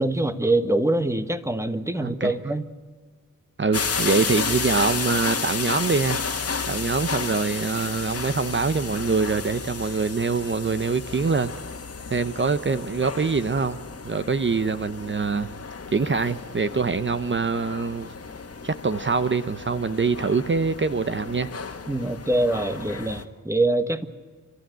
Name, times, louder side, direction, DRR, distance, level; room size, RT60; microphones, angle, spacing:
voice 1, 0.0-2.6 21.9-24.1, right 2 dB, 10° right, 10 dB, 1.4 m, -24 dB
voice 2, 2.0-2.3 3.6-6.2 6.7-11.5 12.1-13.8 14.0-15.5 15.9-18.1 18.6-21.5, right 4 dB, 35° right, 12 dB, 0.9 m, -24 dB
sound 1, 3.7-23.2, left 5 dB, 45° left, 1.8 m, -32 dB
29.5 x 13.0 x 9.3 m, 1.5 s
cardioid pair, 75°, 33 cm